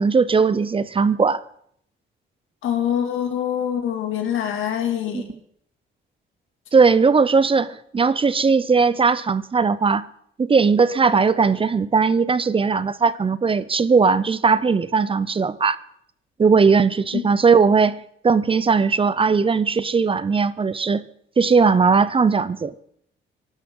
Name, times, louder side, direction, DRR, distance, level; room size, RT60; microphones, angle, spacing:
voice 1, 0.0-1.4 5.1-5.2 6.7-10.0 10.4-15.8 16.4-21.0 21.4-22.7, right 5 dB, 25° right, 0.6 m, -18 dB
voice 2, 2.6-5.3 17.1-17.3, left 9 dB, 85° left, 2.4 m, -24 dB
24.0 x 12.0 x 3.8 m
cardioid pair, 90°, 20 cm